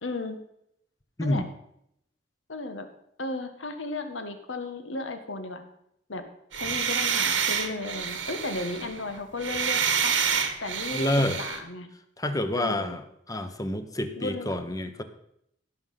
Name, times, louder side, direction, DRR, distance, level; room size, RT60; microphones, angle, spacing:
voice 1, 0.0-0.4 1.2-1.4 2.5-2.9 3.2-5.6 6.1-6.2 6.5-10.1 10.6-11.1 11.4-11.9 12.5-13.0 14.2-14.5, left 2 dB, 85° left, 8 dB, 1.5 m, -34 dB
sound 1, 6.5-11.6, right 7 dB, 85° right, 1.5 m, -28 dB
voice 2, 10.9-11.4 12.2-13.0 13.3-15.0, left 1 dB, 20° left, 9 dB, 0.9 m, -28 dB
16.0 x 6.4 x 5.7 m, 0.74 s
head